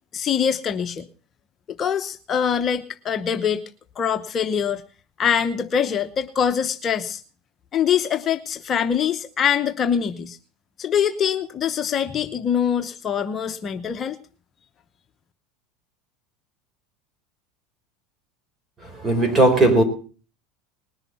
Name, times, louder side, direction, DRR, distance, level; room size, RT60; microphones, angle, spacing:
voice 1, 0.1-1.1 1.8-3.6 4.0-4.8 5.2-7.2 7.7-10.4 10.8-14.2, left 8 dB, 35° left, 0.9 m, -23 dB
voice 2, 18.8-19.8, right 2 dB, 20° right, 4.4 m, -17 dB
20.0 x 6.8 x 7.0 m
supercardioid pair, 105°, 0 cm